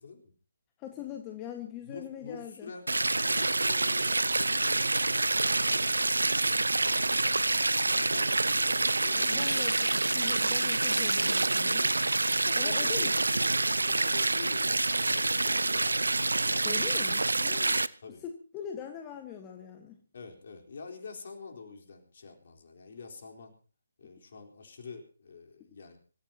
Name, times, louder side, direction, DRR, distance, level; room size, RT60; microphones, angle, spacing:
voice 1, 0.8-2.7 9.0-11.9 12.6-13.1 16.6-17.8 18.2-20.0, left 9 dB, 20° left, 4 dB, 1.5 m, -42 dB
voice 2, 1.9-2.9 3.3-6.0 6.9-9.6 12.4-13.4 13.9-17.1 18.0-18.2 20.1-23.5 24.0-26.0, left 4 dB, 55° left, 3 dB, 3.9 m, -47 dB
sound 1, 2.9-17.9, right 2 dB, 80° right, 0.6 m, -27 dB
25.0 x 14.5 x 2.9 m, 0.37 s
figure-of-eight pair, 145°, 0 cm